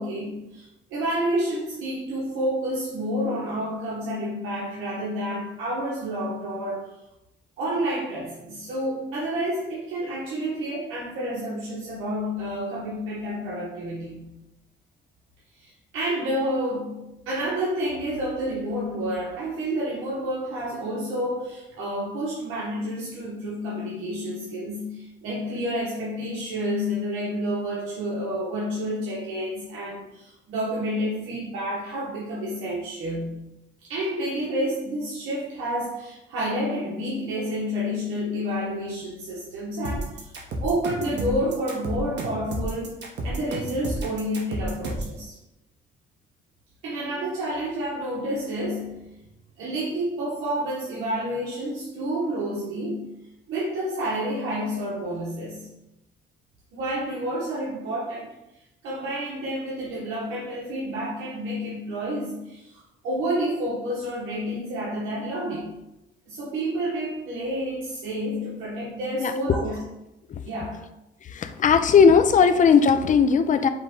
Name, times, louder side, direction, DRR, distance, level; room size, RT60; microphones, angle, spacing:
voice 1, 0.0-6.9 7.6-14.4 15.5-33.5 33.8-40.3 40.6-45.4 46.8-49.0 49.6-53.1 53.5-55.7 56.7-58.3 58.8-65.7 66.3-69.8 70.4-70.9, equal, 90° right, -6 dB, 1.0 m, -29 dB
sound 1, 39.8-45.2, right 1 dB, 60° right, 1.0 m, -31 dB
voice 2, 71.3-73.7, left 6 dB, 40° left, 9 dB, 0.4 m, -17 dB
5.5 x 2.2 x 3.7 m, 0.90 s
cardioid pair, 90°, 20 cm